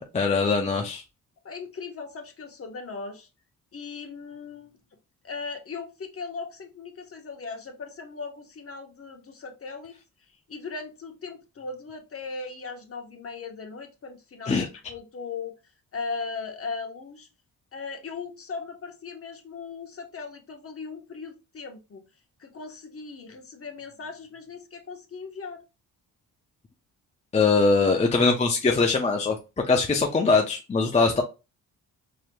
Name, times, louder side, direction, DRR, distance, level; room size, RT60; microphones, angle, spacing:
voice 1, 0.1-1.0 14.5-14.6 27.3-29.4 29.7-31.2, left 4 dB, 20° left, 2 dB, 0.6 m, -22 dB
voice 2, 1.4-3.3 3.7-4.8 5.2-10.0 10.5-15.6 15.9-17.3 17.7-22.0 22.4-25.6, left 4 dB, 40° left, 4 dB, 1.0 m, -38 dB
4.8 x 2.9 x 2.2 m, 0.28 s
cardioid pair, 80°, 36 cm